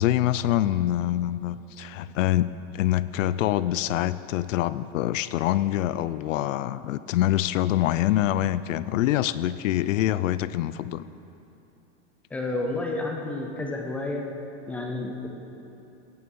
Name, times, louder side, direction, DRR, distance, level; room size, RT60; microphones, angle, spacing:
voice 1, 0.0-11.0, left 13 dB, 80° left, 16 dB, 0.6 m, -25 dB
voice 2, 12.3-14.2 14.7-15.3, left 2 dB, 5° left, 1 dB, 0.4 m, -30 dB
16.5 x 13.0 x 5.4 m, 2.8 s
supercardioid pair, 170°, 38 cm